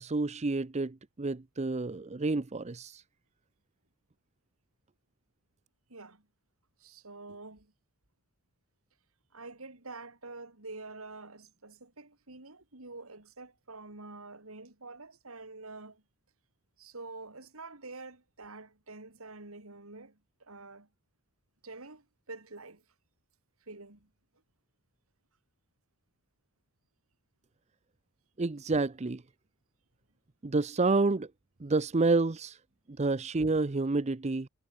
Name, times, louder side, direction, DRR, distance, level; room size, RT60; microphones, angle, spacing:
voice 1, 0.0-3.0 28.4-29.2 30.4-31.3 31.6-32.6 33.0-34.5, right 3 dB, 30° right, 0.6 m, -29 dB
voice 2, 5.9-6.3 6.8-7.7 9.3-16.0 16.8-20.9 21.6-22.8 23.6-24.1, right 3 dB, 80° right, 3.6 m, -47 dB
head